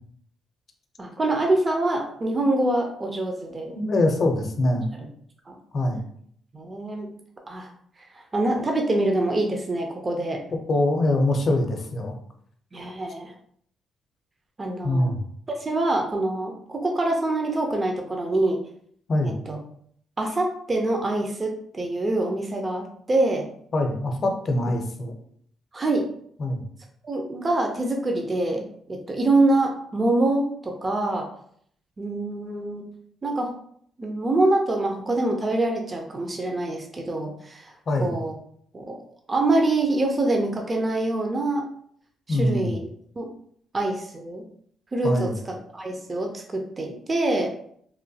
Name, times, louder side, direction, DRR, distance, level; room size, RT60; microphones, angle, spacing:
voice 1, 1.0-3.7 5.5-5.6 6.5-7.1 7.5-7.7 8.1-10.4 12.7-13.3 14.6-15.1 15.5-18.6 19.2-19.6 20.2-23.5 25.7-26.1 27.0-31.3 32.0-32.9 33.2-33.5 34.0-37.7 38.0-38.4 38.7-39.0 39.3-41.6 42.3-42.8 43.2-43.3 43.7-44.4 44.9-47.5, right 2 dB, 30° right, 2 dB, 0.4 m, -25 dB
voice 2, 3.7-4.9 5.7-6.0 10.7-12.2 14.8-15.2 19.1-19.4 23.7-25.2 26.4-26.6 37.9-38.2 42.3-42.7 45.0-45.4, left 1 dB, 50° left, 4 dB, 0.5 m, -23 dB
3.0 x 2.2 x 2.6 m, 0.64 s
cardioid pair, 90°, 0 cm